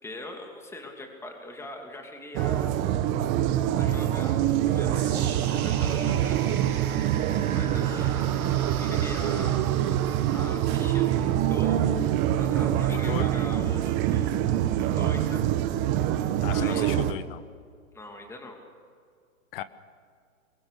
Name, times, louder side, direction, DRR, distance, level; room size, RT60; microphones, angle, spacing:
voice 1, 0.0-2.7 3.7-6.6 7.5-9.5 10.3-11.9 12.4-14.4 14.8-15.5 16.5-16.9 17.9-18.6, left 2 dB, 5° left, 3 dB, 2.7 m, -42 dB
sound 1, 2.3-17.1, right 11 dB, 25° right, 1.2 m, -25 dB
sound 2, 4.9-13.0, right 8 dB, 85° right, 1.5 m, -41 dB
voice 2, 12.9-13.3 16.4-17.4 19.5-19.6, left 13 dB, 40° left, 14 dB, 1.2 m, -35 dB
24.0 x 22.0 x 6.6 m, 2.2 s
hypercardioid pair, 135°, 42 cm